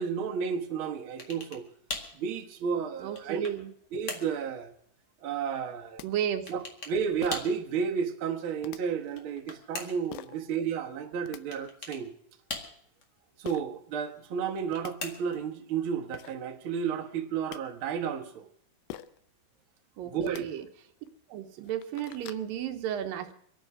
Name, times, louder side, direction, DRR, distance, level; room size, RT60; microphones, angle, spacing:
voice 1, 0.0-1.6 2.2-3.5 3.9-4.7 5.2-6.0 6.5-12.1 13.4-18.5 20.0-20.5, right 6 dB, 55° right, 2 dB, 1.5 m, -32 dB
sound 1, 1.2-1.6 1.9-2.2 2.8-3.6 4.1-4.4 6.5-7.0 7.3-7.6 9.0-10.1 11.5-12.0 12.5-13.0 14.5-15.4, left 3 dB, 35° left, 1.8 m, -40 dB
voice 2, 3.0-3.7 6.0-6.5 20.0-20.7 21.3-23.3, right 10 dB, 75° right, 7 dB, 2.6 m, -33 dB
sound 2, 6.0-6.1 7.2-7.6 8.6-8.8 10.1-10.4 11.0-11.4 13.4-13.6 14.4-14.5 14.7-14.9 15.8-15.9 16.1-16.4 17.2-17.6 18.9-19.2 20.2-20.4 21.1-21.2 21.6-22.5, left 13 dB, 85° left, 2.6 m, -44 dB
26.0 x 9.1 x 4.9 m, 0.67 s
omnidirectional pair, 4.1 m